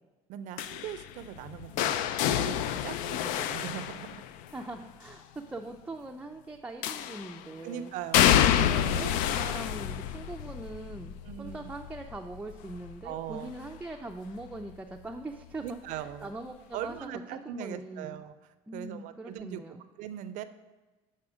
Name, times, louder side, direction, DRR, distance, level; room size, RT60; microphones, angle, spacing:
voice 1, 0.3-4.2 7.6-9.2 11.2-11.7 13.0-13.5 15.6-16.3 16.7-18.3 18.7-20.4, right 10 dB, 65° right, 11 dB, 0.5 m, -40 dB
sound 1, 0.6-4.6 6.8-7.4 8.1-13.9 14.3-14.7 15.9-16.0, left 10 dB, 70° left, 0.4 m, -29 dB
voice 2, 4.5-7.9 8.6-18.2 18.7-19.8, right 2 dB, 10° right, 2 dB, 0.4 m, -42 dB
7.4 x 4.2 x 4.9 m, 1.2 s
supercardioid pair, 85°, 14 cm